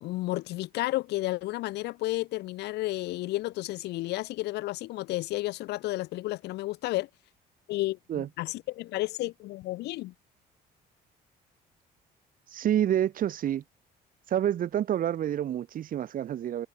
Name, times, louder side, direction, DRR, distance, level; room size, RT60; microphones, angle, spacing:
voice 1, 0.0-7.1 7.7-10.1, left 18 dB, 85° left, 2.5 m, -32 dB
voice 2, 12.5-13.6 14.3-16.7, right 11 dB, 55° right, 2.2 m, -28 dB
cardioid pair, 110°, 17 cm